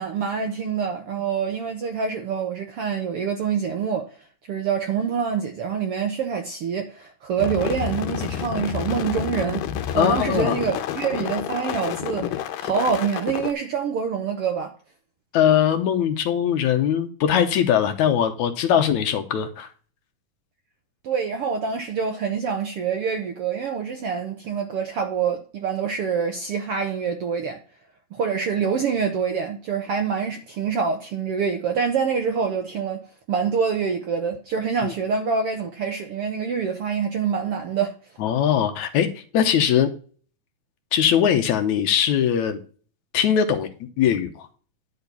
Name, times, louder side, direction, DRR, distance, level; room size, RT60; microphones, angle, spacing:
voice 1, 0.0-4.1 4.5-9.6 9.9-14.7 21.0-27.6 28.1-37.9, right 6 dB, 70° right, 1.4 m, -26 dB
sound 1, 7.4-13.5, left 10 dB, 85° left, 2.5 m, -29 dB
voice 2, 9.9-10.5 15.3-19.7 34.8-34.9 38.2-39.9 40.9-42.6 43.1-44.5, left 9 dB, 70° left, 2.2 m, -21 dB
10.5 x 4.4 x 6.7 m
omnidirectional pair, 3.7 m